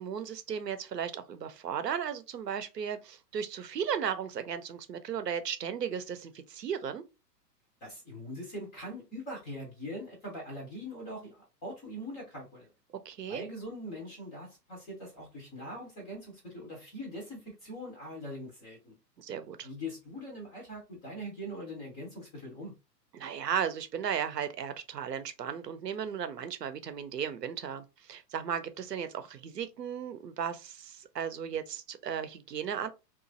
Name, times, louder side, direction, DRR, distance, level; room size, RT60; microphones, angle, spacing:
voice 1, 0.0-7.0 13.0-13.4 19.2-19.7 23.1-32.9, right 8 dB, 75° right, 0.6 m, -35 dB
voice 2, 7.8-12.7 13.3-19.0 19.6-22.8, equal, 15° left, 0.5 m, -42 dB
2.9 x 2.4 x 2.5 m
figure-of-eight pair, 105°, 50 cm